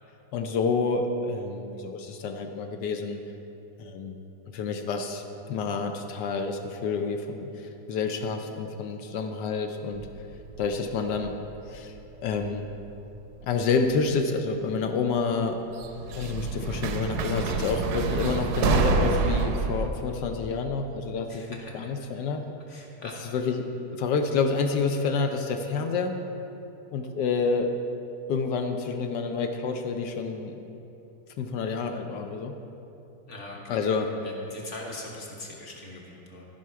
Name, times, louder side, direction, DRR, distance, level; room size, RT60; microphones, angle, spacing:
voice 1, 0.3-3.2 3.8-4.2 4.5-10.1 10.6-11.3 11.7-12.7 13.4-15.6 16.2-21.4 21.7-22.5 23.2-23.7 23.9-26.1 26.9-27.7 28.3-30.6 31.4-32.6 33.7-34.1, left 4 dB, 80° left, 5 dB, 1.2 m, -28 dB
sound 1, 9.9-12.0 12.3-13.0 14.0-14.1 15.8-19.9, right 5 dB, 70° right, 1.1 m, -27 dB
voice 2, 21.3-21.8 22.7-23.1 33.3-36.5, left 2 dB, 45° left, -1 dB, 1.5 m, -42 dB
13.5 x 5.7 x 4.6 m, 2.9 s
omnidirectional pair, 1.9 m